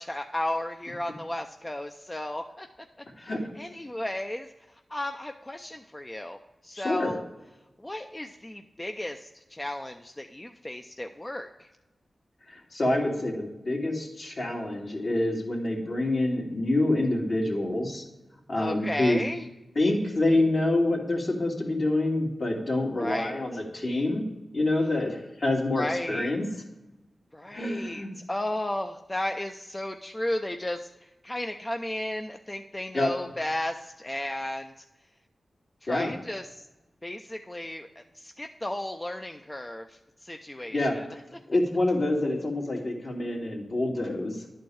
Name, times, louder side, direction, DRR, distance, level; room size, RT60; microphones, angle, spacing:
voice 1, 0.0-2.7 3.2-3.3 3.6-7.2 7.8-11.7 18.6-19.5 22.9-23.4 25.7-26.3 27.3-34.7 35.8-36.6 37.0-41.1, left 1 dB, 20° left, 4 dB, 0.5 m, -34 dB
voice 2, 6.7-7.1 12.5-18.0 18.5-19.2 19.8-24.2 24.5-26.4 27.5-28.1 32.9-33.1 35.9-36.1 40.7-40.9 41.5-44.4, left 2 dB, 60° left, -2 dB, 2.3 m, -27 dB
11.0 x 4.4 x 4.7 m, 1.0 s
cardioid pair, 50°, 0 cm